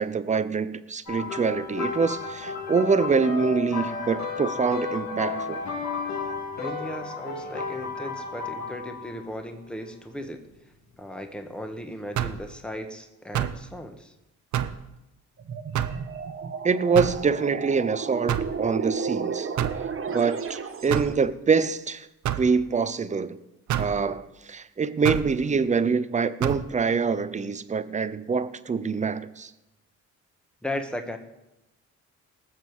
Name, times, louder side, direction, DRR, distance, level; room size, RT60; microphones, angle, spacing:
voice 1, 0.0-5.6 16.6-19.5 20.1-22.1 22.4-23.4 23.8-29.5, right 5 dB, 25° right, 0.7 m, -25 dB
sound 1, 1.1-9.3 10.2-10.4 12.3-12.4, left 5 dB, 65° left, 3.4 m, -33 dB
voice 2, 6.6-10.4 11.0-14.1 20.9-21.0 30.6-31.2, left 1 dB, 5° left, 1.5 m, -36 dB
sound 2, 12.2-12.5 13.3-13.6 14.5-14.8 15.7-16.0 16.9-17.2 18.3-18.6 19.6-19.9 20.9-21.2 22.2-22.5 23.7-24.0 25.0-25.3 26.4-26.6, right 10 dB, 70° right, 0.8 m, -27 dB
sound 3, 15.4-21.2, right 6 dB, 45° right, 1.3 m, -33 dB
19.0 x 7.5 x 4.8 m
cardioid pair, 90°, 30 cm